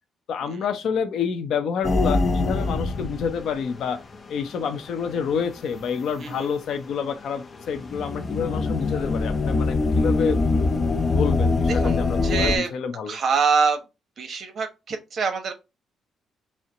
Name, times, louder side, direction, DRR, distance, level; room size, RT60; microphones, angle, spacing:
voice 1, 0.3-4.0 4.3-13.2, left 6 dB, 70° left, 0.7 m, -28 dB
sound 1, 1.8-3.8 4.1-4.2 5.2-5.4 7.5-12.6, left 3 dB, 35° left, 0.6 m, -23 dB
voice 2, 11.7-12.7 13.1-13.8 14.2-15.5, right 5 dB, 55° right, 1.0 m, -25 dB
4.4 x 2.1 x 3.7 m
cardioid pair, 90°, 0 cm